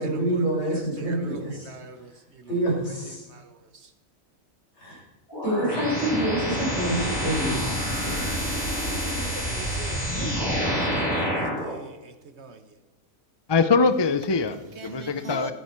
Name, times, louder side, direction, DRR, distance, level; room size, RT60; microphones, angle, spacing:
voice 1, 0.0-1.7 2.5-3.3 4.8-5.0 5.4-7.6 7.9-8.3, right 1 dB, 55° left, 6.3 m, -27 dB
voice 2, 1.1-2.5 3.3-3.9 8.9-10.3 10.8-12.6 14.8-15.5, right 4 dB, 55° right, 1.2 m, -42 dB
sound 1, 5.3-11.7, equal, 15° left, 3.6 m, -27 dB
voice 3, 13.5-15.5, left 4 dB, 35° left, 0.4 m, -23 dB
15.0 x 13.5 x 4.4 m
omnidirectional pair, 1.4 m